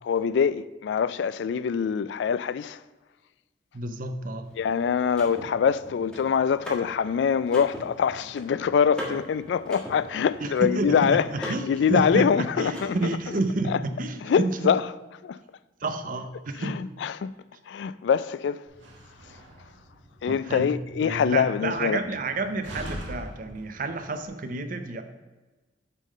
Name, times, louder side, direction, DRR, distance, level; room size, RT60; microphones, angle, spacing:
voice 1, 0.0-2.8 4.6-13.0 13.7-13.8 14.2-14.8 15.2-15.4 16.6-17.3 17.7-18.6 20.2-22.0, left 7 dB, 70° left, 0.3 m, -24 dB
voice 2, 3.7-4.5 10.4-14.6 15.8-16.8 20.3-20.7 21.0-25.0, right 2 dB, 45° right, 0.6 m, -30 dB
Car / Mechanisms, 4.4-13.4, equal, 5° left, 1.5 m, -42 dB
Slam, 18.7-24.3, equal, 90° right, 1.7 m, -43 dB
8.2 x 3.7 x 6.4 m
head